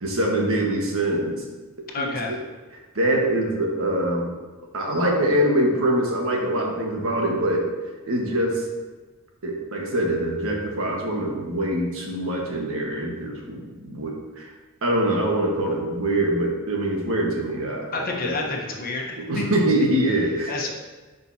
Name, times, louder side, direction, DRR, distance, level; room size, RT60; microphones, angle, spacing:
voice 1, 0.0-1.4 2.0-2.4 2.9-4.3 4.7-7.6 8.1-8.6 9.4-14.5 14.8-18.4 19.3-20.7, right 1 dB, 70° right, 0 dB, 1.5 m, -24 dB
voice 2, 1.9-2.3 17.9-19.0 19.3-19.6 20.5-20.8, left 3 dB, 45° left, 0 dB, 1.1 m, -28 dB
11.0 x 5.3 x 2.8 m, 1.2 s
head